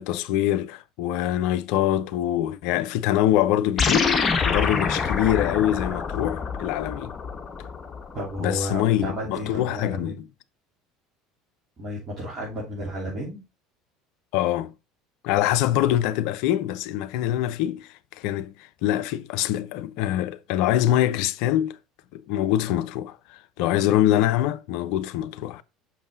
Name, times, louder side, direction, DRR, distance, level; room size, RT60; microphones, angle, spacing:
voice 1, 0.0-4.1 4.4-7.1 8.4-10.2 14.3-14.7 15.2-18.5 18.8-21.8 22.1-25.6, left 13 dB, 55° left, 0.4 m, -24 dB
sound 1, 3.8-8.4, left 5 dB, 25° left, 1.1 m, -26 dB
voice 2, 8.1-10.1 11.8-13.4, equal, 35° right, 3.4 m, -32 dB
6.2 x 5.4 x 3.8 m
figure-of-eight pair, 65°, 0 cm